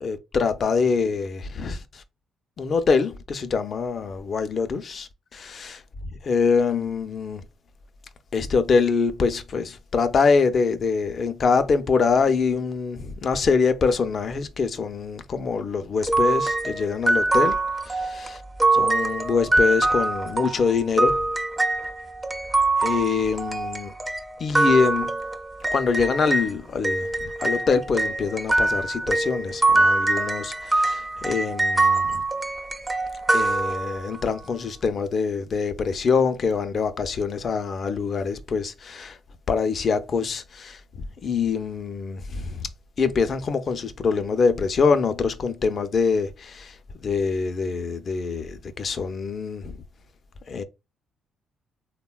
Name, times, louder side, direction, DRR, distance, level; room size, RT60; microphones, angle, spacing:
voice 1, 0.0-2.0 2.6-5.8 6.2-7.4 8.3-17.6 17.8-18.3 18.8-21.2 22.8-23.9 24.4-25.2 25.7-32.2 33.3-39.2 39.5-42.7 43.0-49.8 50.5-50.6, left 5 dB, 50° left, 0.4 m, -24 dB
sound 1, 16.0-26.5 26.8-34.2, right 2 dB, 15° right, 0.4 m, -24 dB
3.6 x 2.1 x 2.2 m
cardioid pair, 90°, 0 cm